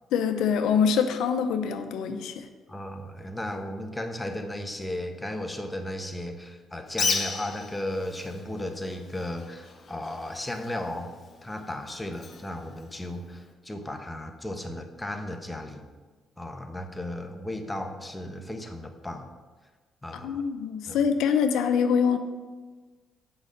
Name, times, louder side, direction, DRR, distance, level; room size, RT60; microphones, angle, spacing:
voice 1, 0.1-2.5 20.2-22.2, left 7 dB, 85° left, 7 dB, 0.7 m, -24 dB
voice 2, 2.7-11.1 11.4-15.8 16.4-19.3 20.0-20.4 20.9-21.0, left 1 dB, 10° left, 5 dB, 1.1 m, -35 dB
Bird, 6.9-13.5, left 4 dB, 45° left, 1.1 m, -36 dB
8.1 x 5.4 x 6.6 m, 1.4 s
cardioid pair, 90°, 0 cm